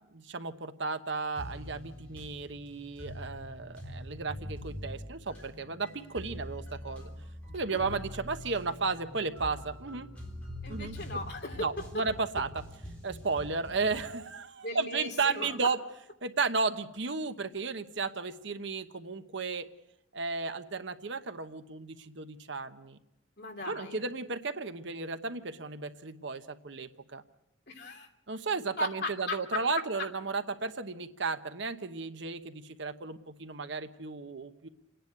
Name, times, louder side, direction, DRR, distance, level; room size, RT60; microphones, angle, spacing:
voice 1, 0.1-7.1 7.5-10.1 10.7-11.0 11.6-12.6 13.0-15.8 16.2-19.7 20.1-23.0 23.7-27.2 28.3-34.7, right 4 dB, 65° right, 9 dB, 1.0 m, -34 dB
sound 1, 1.4-14.1, equal, 5° left, 3.6 m, -44 dB
voice 2, 10.6-11.7 14.6-15.7 23.4-24.0 27.7-28.1 28.8-29.6, left 2 dB, 55° left, 2 dB, 3.0 m, -37 dB
28.0 x 10.5 x 9.3 m, 0.85 s
head